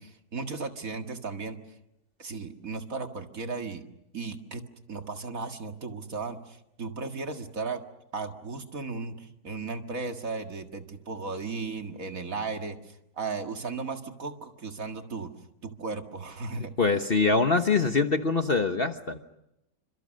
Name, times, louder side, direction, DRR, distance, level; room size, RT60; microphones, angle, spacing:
voice 1, 0.0-1.6 2.2-3.8 4.1-4.6 4.9-7.8 8.1-15.3 15.6-16.7, right 4 dB, 50° right, 5 dB, 2.2 m, -35 dB
voice 2, 16.8-19.2, left 4 dB, 35° left, 7 dB, 1.2 m, -24 dB
29.0 x 26.0 x 6.5 m, 0.85 s
omnidirectional pair, 1.9 m